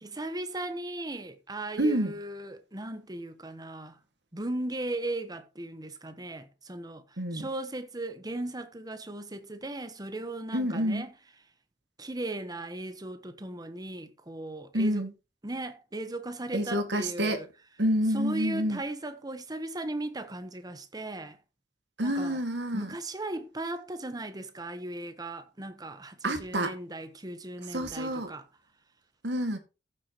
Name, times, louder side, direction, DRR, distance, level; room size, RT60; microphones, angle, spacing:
voice 1, 0.0-4.0 4.3-11.1 12.0-15.1 15.4-17.5 18.1-21.4 22.0-22.4 22.7-28.4, right 2 dB, 20° right, 1.1 m, -37 dB
voice 2, 1.8-2.1 7.2-7.5 10.5-11.1 14.7-15.1 16.5-17.4 17.8-18.8 22.0-22.9 26.2-26.7 27.7-28.3 29.2-29.6, equal, 75° right, 2.1 m, -28 dB
14.5 x 7.6 x 3.1 m
head